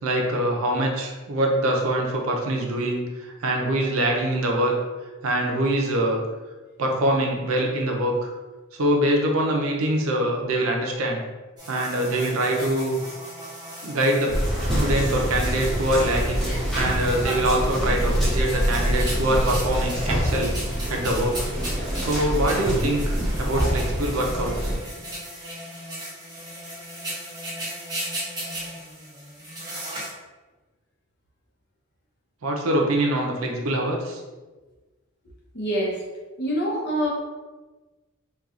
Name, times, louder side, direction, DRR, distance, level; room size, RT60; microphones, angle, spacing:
voice 1, 0.0-4.7 5.2-6.2 6.8-8.3 8.8-11.2 11.7-13.0 13.8-14.4 14.8-16.5 16.7-20.5 20.9-21.5 22.0-24.8 32.4-34.2, right 1 dB, 75° right, 0 dB, 0.6 m, -24 dB
sound 1, 11.6-30.1, right 1 dB, 20° right, 1.2 m, -37 dB
sound 2, 14.3-24.8, equal, ahead, 0.9 m, -25 dB
voice 2, 35.5-36.0 36.4-37.1, equal, 50° left, -3 dB, 0.8 m, -25 dB
4.3 x 2.3 x 2.5 m, 1.2 s
head